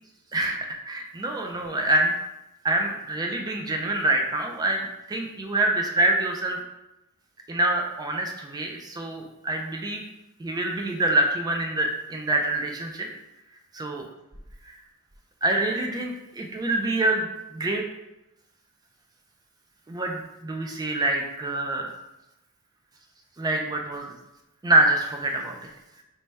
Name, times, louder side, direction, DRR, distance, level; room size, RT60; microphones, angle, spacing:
voice 1, 0.9-2.1 2.6-6.6 7.5-10.0 10.4-13.1 13.7-14.0 14.6-14.7 15.4-17.8 19.9-21.9 23.4-24.1 24.6-25.7, right 1 dB, 15° right, 2 dB, 0.3 m, -26 dB
3.2 x 2.2 x 4.0 m, 0.93 s
head